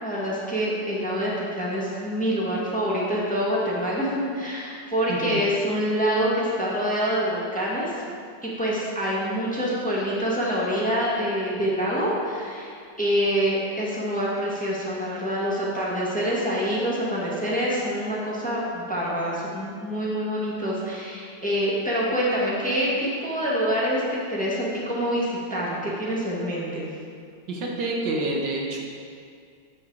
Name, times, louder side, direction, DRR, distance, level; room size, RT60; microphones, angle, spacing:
voice 1, 0.0-7.9 8.4-12.7 13.0-26.8, equal, 5° left, -6 dB, 1.6 m, -26 dB
voice 2, 27.5-28.8, right 2 dB, 85° right, -1 dB, 1.9 m, -28 dB
8.9 x 7.4 x 4.8 m, 2.2 s
omnidirectional pair, 1.9 m